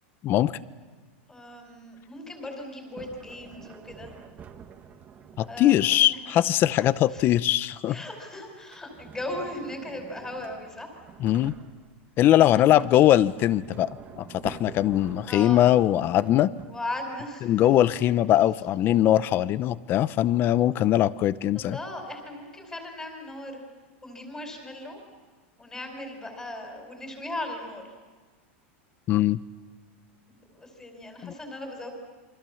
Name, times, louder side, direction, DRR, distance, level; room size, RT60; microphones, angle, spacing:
voice 1, 1.3-4.1 5.5-5.7 6.0-6.4 6.8-7.3 7.9-11.0 12.4-12.8 15.3-15.7 16.6-17.7 21.5-23.6 24.0-25.0 25.6-27.8 30.3-31.9, left 1 dB, 10° left, 1 dB, 4.6 m, -38 dB
Sliding door, 3.0-6.5 8.5-12.1 12.7-17.0, right 7 dB, 25° right, 1.5 m, -47 dB
voice 2, 5.4-8.0 11.2-11.5 12.2-13.9 14.2-16.5 17.4-21.8 29.1-29.4 31.2-31.3, left 13 dB, 30° left, 17 dB, 0.7 m, -21 dB
28.5 x 24.5 x 7.2 m, 1.4 s
supercardioid pair, 145°, 7 cm